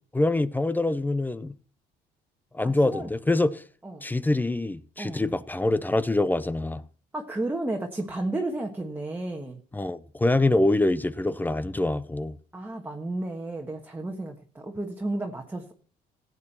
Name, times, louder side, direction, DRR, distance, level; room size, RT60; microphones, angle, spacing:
voice 1, 0.0-1.5 2.5-3.6 4.0-6.8 9.7-12.4, left 2 dB, 10° left, 0.6 m, -25 dB
voice 2, 2.6-3.1 3.8-4.0 5.0-5.2 7.1-9.6 12.5-15.7, right 2 dB, 10° right, 1.5 m, -32 dB
15.5 x 8.6 x 4.3 m
cardioid pair, 110°, 17 cm